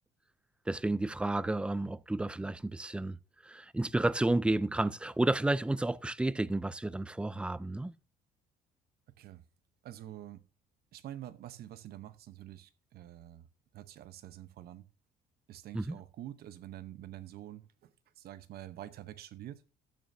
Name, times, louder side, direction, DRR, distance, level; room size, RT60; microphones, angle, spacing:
voice 1, 0.7-3.2 3.4-7.9 15.7-16.0, right 2 dB, 5° right, 0.3 m, -31 dB
voice 2, 9.8-10.4 10.9-13.5 13.7-14.8 15.5-17.9 18.2-19.6, right 13 dB, 65° right, 0.9 m, -47 dB
12.5 x 8.9 x 2.7 m
cardioid pair, 110°, 17 cm